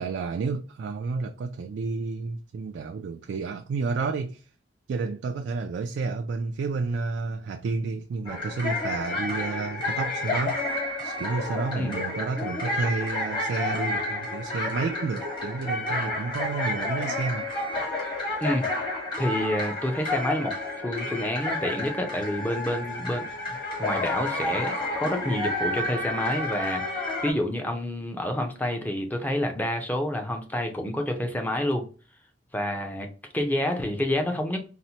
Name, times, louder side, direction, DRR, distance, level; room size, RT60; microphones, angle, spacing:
voice 1, 0.0-4.5 4.9-17.5, right 4 dB, 75° right, 0.3 m, -31 dB
sound 1, 8.3-27.3, left 2 dB, 30° left, 1.2 m, -30 dB
voice 2, 19.2-20.6 20.8-31.8 32.5-33.1 33.3-34.6, left 1 dB, 10° left, 0.5 m, -28 dB
4.1 x 2.1 x 2.7 m
head